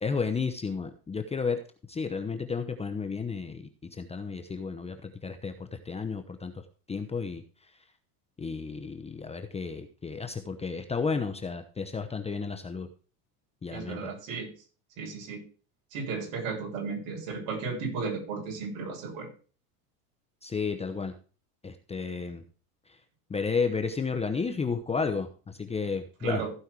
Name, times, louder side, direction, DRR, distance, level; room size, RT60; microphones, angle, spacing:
voice 1, 0.0-1.6 1.9-7.4 8.4-12.9 13.6-14.0 20.4-21.1 21.6-22.4 23.3-26.4, left 5 dB, 15° left, 7 dB, 0.9 m, -32 dB
voice 2, 13.7-14.5 15.0-15.5 15.9-19.3 26.2-26.5, right 4 dB, 65° right, -1 dB, 7.3 m, -34 dB
15.5 x 5.6 x 4.8 m, 0.38 s
supercardioid pair, 125°, 46 cm